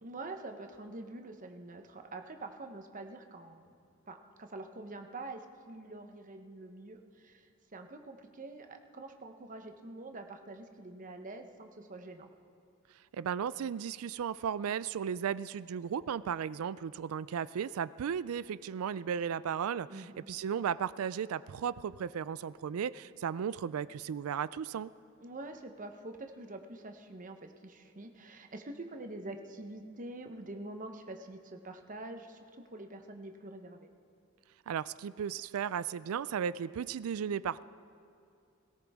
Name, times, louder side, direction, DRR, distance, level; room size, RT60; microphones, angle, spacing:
voice 1, 0.0-3.8 4.1-12.3 19.9-20.1 25.2-33.9, right 2 dB, 40° right, 5 dB, 0.9 m, -46 dB
voice 2, 13.1-24.9 34.7-37.6, right 8 dB, 80° right, 18 dB, 0.4 m, -35 dB
18.0 x 17.5 x 3.6 m, 2.5 s
head